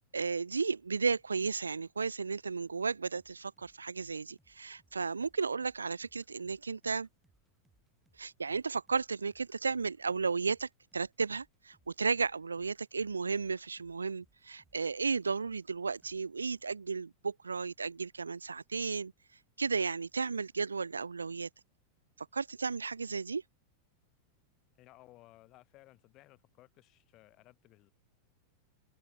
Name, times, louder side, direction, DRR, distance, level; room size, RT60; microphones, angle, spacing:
voice 1, 0.1-7.1 8.2-19.1 19.6-21.5 22.2-23.4, right 4 dB, 75° right, 0.5 m, -34 dB
sound 1, 3.2-15.7 16.0-16.2, right 2 dB, 5° right, 4.6 m, -72 dB
voice 2, 24.8-27.9, left 18 dB, 40° left, 3.2 m, -59 dB
figure-of-eight pair, 90°, 0 cm